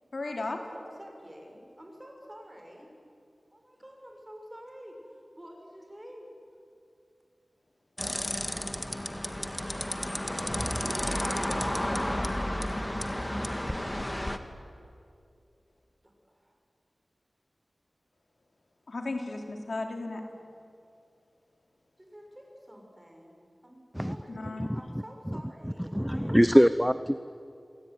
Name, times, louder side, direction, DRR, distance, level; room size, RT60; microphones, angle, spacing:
voice 1, 0.1-0.6 18.9-20.2 24.3-24.7, left 2 dB, 65° left, 3 dB, 3.6 m, -35 dB
voice 2, 0.7-2.9 3.5-6.3 16.0-16.6 22.0-23.4 23.6-26.6, equal, 20° right, 1 dB, 6.9 m, -49 dB
sound 1, 8.0-14.4, left 1 dB, 15° left, 1.8 m, -31 dB
voice 3, 25.9-27.2, equal, ahead, 12 dB, 0.7 m, -22 dB
27.0 x 23.0 x 9.7 m, 2.5 s
wide cardioid pair, 75°, 0 cm